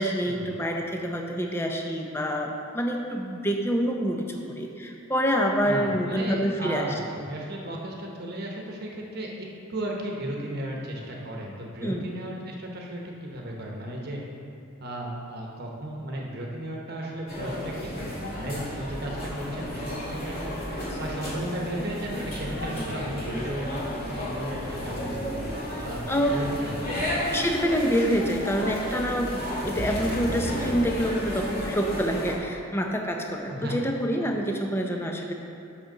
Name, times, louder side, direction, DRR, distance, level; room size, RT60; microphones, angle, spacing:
voice 1, 0.0-6.9 11.8-12.1 26.1-26.4 27.3-35.3, equal, 10° left, 2 dB, 0.6 m, -27 dB
voice 2, 5.6-14.2 14.8-20.5 21.0-25.4 25.8-26.0 26.3-27.2 33.5-33.9, right 1 dB, 45° right, -1 dB, 1.0 m, -35 dB
sound 1, 17.3-32.3, equal, 45° left, 2.0 m, -32 dB
6.4 x 5.8 x 6.5 m, 2.6 s
head